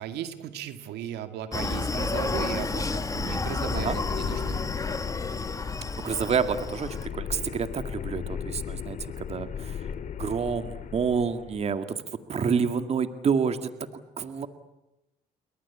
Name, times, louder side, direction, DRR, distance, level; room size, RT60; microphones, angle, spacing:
voice 1, 0.0-4.7, right 10 dB, 80° right, 9 dB, 2.3 m, -36 dB
Screaming, 1.5-7.1, left 3 dB, 20° left, 1.6 m, -31 dB
sound 1, 2.2-11.7, left 8 dB, 50° left, 2.4 m, -37 dB
voice 2, 6.0-9.8 10.2-12.0 12.3-13.6 14.2-14.5, right 6 dB, 40° right, 9 dB, 2.0 m, -28 dB
29.5 x 22.5 x 8.5 m, 0.95 s
cardioid pair, 110°, 17 cm